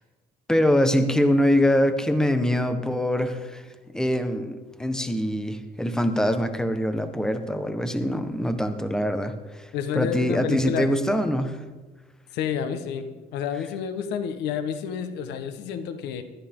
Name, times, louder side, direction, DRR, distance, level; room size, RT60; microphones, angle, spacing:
voice 1, 0.5-3.6 3.9-9.6 9.9-11.6, equal, 5° left, 7 dB, 1.4 m, -23 dB
voice 2, 9.7-10.9 12.3-13.1 13.3-16.2, left 8 dB, 85° left, 8 dB, 1.5 m, -29 dB
20.5 x 14.0 x 3.9 m, 1.2 s
cardioid pair, 110°, 17 cm